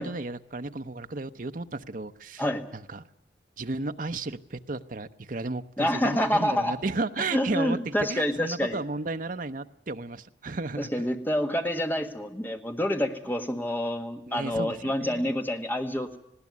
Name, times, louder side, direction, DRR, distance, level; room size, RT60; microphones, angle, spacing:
voice 1, 0.0-2.4 2.7-3.0 3.6-10.9 14.3-15.3, right 3 dB, 50° right, 9 dB, 0.8 m, -33 dB
voice 2, 5.8-6.7 7.3-8.8 10.8-16.2, left 1 dB, 10° left, 5 dB, 1.6 m, -27 dB
20.0 x 16.5 x 9.6 m, 0.79 s
head